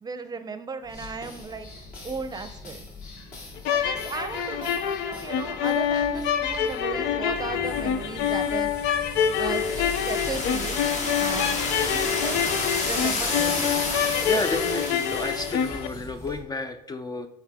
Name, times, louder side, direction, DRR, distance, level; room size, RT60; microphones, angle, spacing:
voice 1, 0.0-1.7 2.0-2.8 3.7-8.7 9.4-10.8 11.2-11.6 11.9-12.4 12.8-13.8, right 4 dB, 25° right, 9 dB, 0.6 m, -35 dB
sound 1, 0.9-16.4, left 2 dB, 60° left, 2.5 m, -38 dB
sound 2, 3.6-15.9, left 8 dB, 90° left, 0.5 m, -26 dB
sound 3, 9.2-15.7, left 3 dB, 45° left, 1.1 m, -31 dB
voice 2, 14.2-17.3, left 2 dB, 25° left, 8 dB, 0.4 m, -31 dB
8.6 x 3.7 x 3.5 m, 0.87 s
cardioid pair, 110°, 17 cm